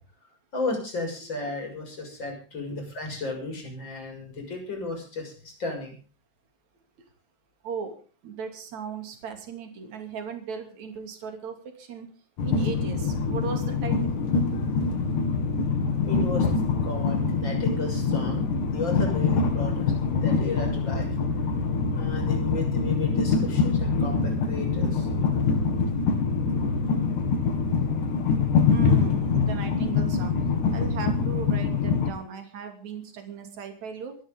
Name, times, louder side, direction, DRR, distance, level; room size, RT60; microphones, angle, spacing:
voice 1, 0.5-5.9 16.1-16.5 16.8-19.9 20.2-21.2 22.0-25.1, left 2 dB, 35° left, 3 dB, 7.2 m, -34 dB
voice 2, 7.6-8.0 8.2-12.1 12.4-14.1 14.5-14.6 20.6-20.7 21.4-21.6 24.8-24.9 28.7-30.4 30.7-34.2, right 6 dB, 60° right, 6 dB, 4.1 m, -37 dB
Train, 12.4-32.1, left 4 dB, 70° left, 3.6 m, -24 dB
24.5 x 12.5 x 3.8 m, 0.38 s
omnidirectional pair, 3.8 m